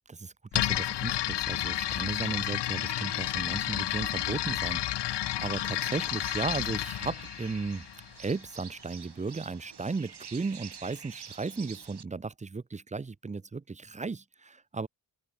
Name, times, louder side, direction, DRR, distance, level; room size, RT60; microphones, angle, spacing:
voice 1, 0.1-7.9 8.2-14.9, right 4 dB, 15° right, 0.5 m, -35 dB
sound 1, 0.5-8.3, left 13 dB, 60° left, 0.7 m, -31 dB
sound 2, 1.6-12.0, right 6 dB, 55° right, 6.6 m, -49 dB
cardioid pair, 80°, 47 cm